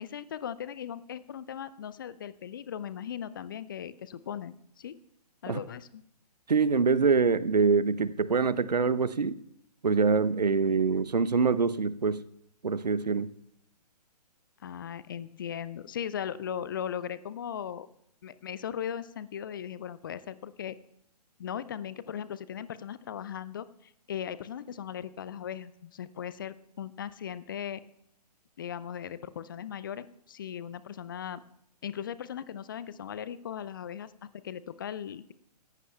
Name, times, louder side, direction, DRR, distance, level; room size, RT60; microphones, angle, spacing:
voice 1, 0.0-5.0 5.4-6.0 14.6-17.9 18.2-20.8 21.4-27.8 28.6-31.4 31.8-35.3, left 9 dB, 30° left, 17 dB, 0.4 m, -38 dB
voice 2, 6.5-9.4 9.8-12.2 12.6-13.3, right 5 dB, 75° right, 16 dB, 0.7 m, -25 dB
18.5 x 14.5 x 2.2 m, 0.74 s
figure-of-eight pair, 130°, 21 cm